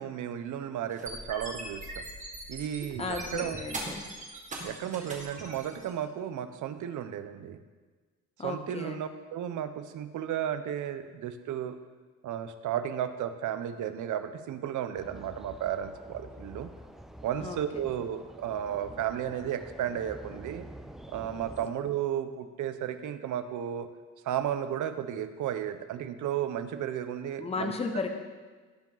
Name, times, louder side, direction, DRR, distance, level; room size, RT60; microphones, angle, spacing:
voice 1, 0.0-2.0 2.5-3.6 4.6-7.6 8.4-11.8 12.2-16.7 17.2-20.7 21.1-23.9 24.2-27.7, right 10 dB, 80° right, 10 dB, 0.8 m, -34 dB
sound 1, 0.9-5.9, right 2 dB, 25° right, 1.8 m, -40 dB
voice 2, 3.0-4.0 8.4-9.0 17.4-17.9 27.4-28.1, left 4 dB, 20° left, 5 dB, 0.8 m, -35 dB
sound 2, 14.9-21.7, right 1 dB, ahead, 0.4 m, -47 dB
17.0 x 7.4 x 3.9 m, 1.4 s
cardioid pair, 175°, 30 cm